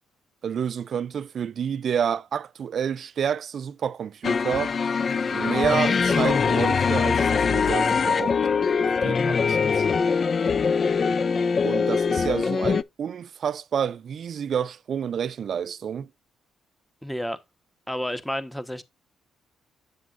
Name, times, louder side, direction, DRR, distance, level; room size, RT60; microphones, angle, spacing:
voice 1, 0.4-4.8 5.3-8.4 9.0-9.9 11.6-16.1, right 8 dB, 55° right, 0.4 m, -29 dB
sound 1, 4.2-12.8, left 5 dB, 40° left, 0.3 m, -22 dB
voice 2, 17.0-17.4 17.9-18.8, equal, 5° left, 1.0 m, -30 dB
8.3 x 7.2 x 2.5 m
cardioid pair, 90°, 0 cm